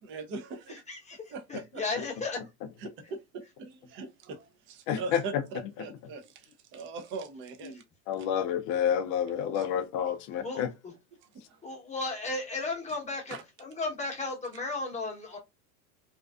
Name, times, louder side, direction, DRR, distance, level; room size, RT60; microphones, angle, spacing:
voice 1, 0.0-0.8 1.3-1.8 2.8-7.8 9.5-9.7 11.5-11.6 13.3-13.4, right 4 dB, 25° right, 0.5 m, -41 dB
voice 2, 0.7-2.4 10.4-10.6 11.6-15.4, left 3 dB, 15° left, 0.9 m, -35 dB
voice 3, 4.9-5.4 7.6-7.7 8.1-10.7, left 9 dB, 40° left, 0.4 m, -29 dB
2.5 x 2.3 x 2.3 m
hypercardioid pair, 105°, 47 cm